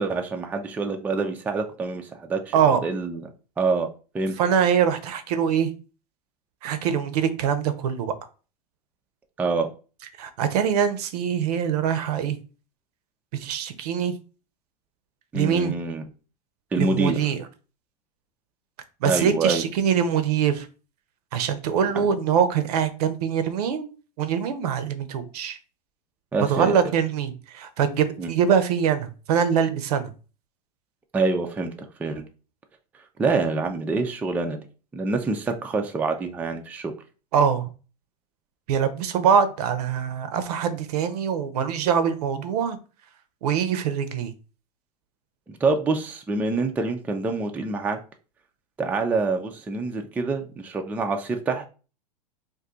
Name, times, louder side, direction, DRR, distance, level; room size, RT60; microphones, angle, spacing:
voice 1, 0.0-3.3 3.6-3.9 4.1-4.4 9.4-9.7 15.3-16.0 16.7-17.2 19.0-19.6 21.9-22.0 26.3-26.7 28.2-28.3 31.1-32.3 33.2-34.6 34.9-36.9 45.5-48.0 48.8-51.7, right 3 dB, 10° right, 4 dB, 0.3 m, -26 dB
voice 2, 4.4-5.7 6.6-8.1 10.2-12.4 13.3-14.1 15.3-15.7 16.8-17.4 19.0-20.7 21.3-23.9 24.2-25.6 26.5-30.1 37.3-37.7 38.7-42.8 43.4-44.3, right 7 dB, 65° right, 11 dB, 0.6 m, -23 dB
2.6 x 2.3 x 3.8 m, 0.35 s
hypercardioid pair, 105°, 21 cm